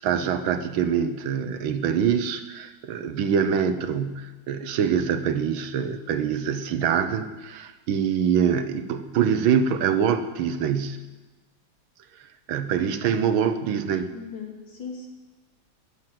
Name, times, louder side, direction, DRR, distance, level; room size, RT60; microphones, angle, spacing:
voice 1, 0.0-11.0 12.5-14.1, right 7 dB, 80° right, 9 dB, 1.8 m, -24 dB
voice 2, 14.1-15.1, left 5 dB, 70° left, 0 dB, 3.3 m, -38 dB
21.0 x 7.6 x 7.7 m, 1.2 s
omnidirectional pair, 2.2 m